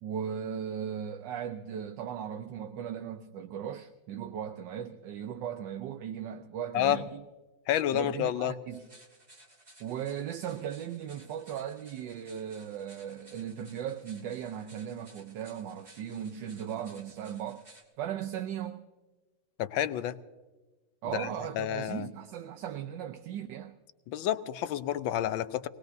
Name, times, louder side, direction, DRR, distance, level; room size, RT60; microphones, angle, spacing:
voice 1, 0.0-7.2 7.9-8.8 9.8-17.6 18.0-18.8 21.0-23.7, right 9 dB, 70° right, 1.3 m, -37 dB
voice 2, 7.7-8.5 19.6-20.2 21.1-21.3 21.5-22.1 24.1-25.7, left 11 dB, 75° left, 1.4 m, -29 dB
sound 1, 8.7-17.8, right 1 dB, 30° right, 2.7 m, -58 dB
24.5 x 19.0 x 2.7 m
omnidirectional pair, 2.2 m